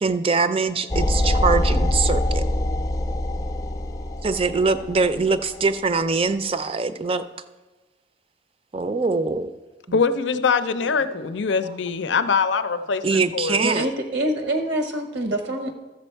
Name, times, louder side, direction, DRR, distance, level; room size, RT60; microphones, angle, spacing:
voice 1, 0.0-2.4 4.2-7.2 8.7-9.5 13.0-13.9, right 4 dB, 30° right, 11 dB, 0.4 m, -23 dB
sound 1, 0.9-5.7, left 1 dB, 20° left, 0.5 m, -24 dB
voice 2, 9.9-13.6, left 5 dB, 85° left, 11 dB, 0.6 m, -23 dB
voice 3, 13.6-15.7, right 1 dB, 85° right, 5 dB, 0.9 m, -25 dB
13.5 x 7.0 x 4.5 m, 1.2 s
head